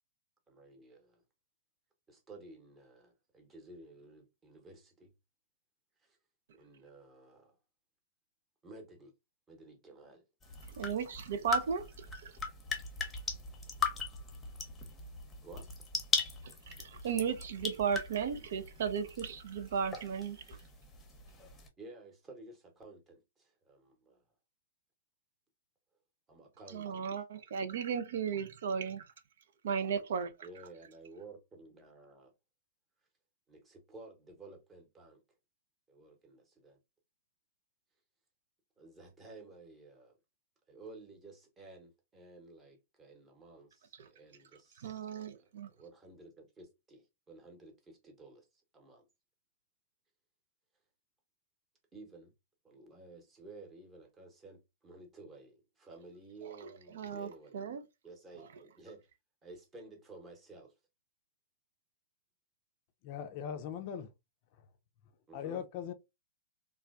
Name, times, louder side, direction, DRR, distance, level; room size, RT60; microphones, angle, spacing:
voice 1, 0.5-1.2 2.1-5.1 6.0-6.2 6.5-7.6 8.6-9.1 9.5-10.2 15.4-15.7 21.8-24.2 26.3-27.1 30.4-32.3 33.5-35.2 35.9-36.8 38.8-40.2 40.7-49.1 51.9-52.3 52.6-57.5 58.0-59.0 59.4-60.7 65.3-65.6, right 3 dB, 20° right, 0.9 m, -54 dB
sound 1, 10.4-21.7, left 4 dB, 15° left, 0.7 m, -39 dB
voice 2, 10.7-12.3 16.4-20.6 26.7-29.0 29.6-30.3 44.8-45.7 56.4-56.7 56.9-57.8, right 7 dB, 60° right, 0.4 m, -35 dB
voice 3, 63.0-64.1 65.3-65.9, left 8 dB, 45° left, 0.4 m, -39 dB
3.1 x 2.2 x 2.4 m
figure-of-eight pair, 110°, 0 cm